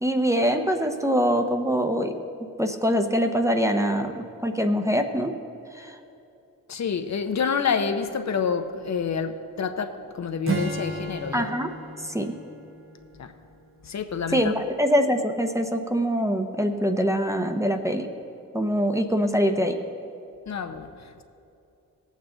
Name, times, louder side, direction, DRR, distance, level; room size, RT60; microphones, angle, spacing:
voice 1, 0.0-2.1 2.6-5.3 5.8-5.9 11.3-11.7 12.1-12.3 14.3-18.1 18.5-19.8, equal, 10° right, 0.8 m, -24 dB
voice 2, 6.7-11.5 13.2-13.3 13.8-14.6 20.5-21.2, left 6 dB, 50° left, 0.7 m, -28 dB
Acoustic guitar / Strum, 10.4-13.9, right 2 dB, 40° right, 1.0 m, -33 dB
17.5 x 8.2 x 3.9 m
cardioid pair, 75°, 34 cm